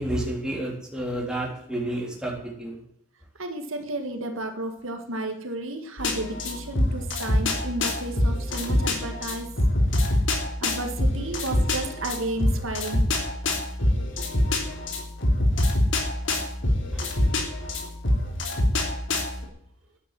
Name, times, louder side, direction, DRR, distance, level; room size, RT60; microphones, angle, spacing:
voice 1, 0.0-2.8 14.6-14.8 16.9-17.1 17.6-17.7, right 1 dB, 5° right, -2 dB, 3.6 m, -30 dB
voice 2, 3.4-9.5 9.9-10.0 10.6-13.1 18.1-18.2, right 2 dB, 80° right, 5 dB, 1.8 m, -32 dB
sound 1, 6.0-19.4, left 1 dB, 65° left, 3.2 m, -25 dB
11.0 x 9.6 x 7.6 m, 0.73 s
head